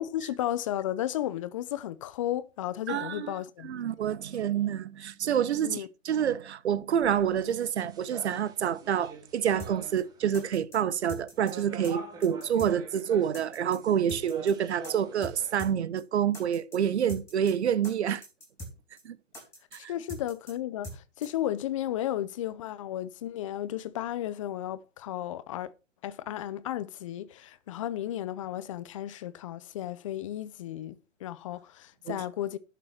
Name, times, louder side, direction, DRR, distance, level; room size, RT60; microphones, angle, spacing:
voice 1, 0.0-3.7 5.6-5.9 19.8-25.7 26.0-32.6, left 12 dB, 25° left, 0.7 m, -34 dB
voice 2, 2.9-3.3 3.6-18.2 19.0-19.2 19.7-19.9 32.1-32.2, right 9 dB, 60° right, 1.1 m, -28 dB
sound 1, 7.0-10.3 11.3-15.7, right 4 dB, 10° right, 1.9 m, -46 dB
sound 2, 9.6-9.7 10.0-10.1 10.3-10.8 11.1-11.5 11.8-11.9 12.2-12.7 13.0-13.1 13.3-13.8 14.1-14.5 14.8-14.9 15.2-15.3 15.6-15.7 16.0-16.1 16.3-16.8 17.1-17.5 17.8-17.9 18.2-18.7 19.0-19.1 19.3-19.8 20.1-20.5 20.8-21.0 21.2-21.3, equal, 5° left, 4.2 m, -42 dB
11.0 x 6.8 x 5.9 m
hypercardioid pair, 150°, 38 cm